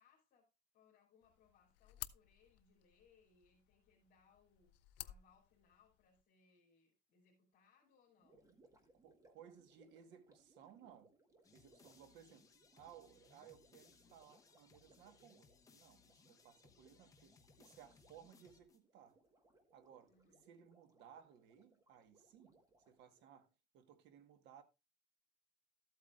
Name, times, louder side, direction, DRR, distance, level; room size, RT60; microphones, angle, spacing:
voice 1, 0.0-4.7 5.0-8.5 20.1-20.5, left 5 dB, 50° left, 2.8 m, -72 dB
Desk Lamp, 1.2-6.2, left 17 dB, 85° left, 0.5 m, -55 dB
Gurgling, 8.2-23.5, right 2 dB, 20° right, 1.4 m, -71 dB
voice 2, 9.0-11.1 11.5-19.2 19.7-20.1 20.5-24.6, right 9 dB, 85° right, 1.4 m, -61 dB
sound 1, 11.4-19.1, left 5 dB, 20° left, 0.9 m, -68 dB
13.0 x 8.2 x 2.4 m
cardioid pair, 165°, 18 cm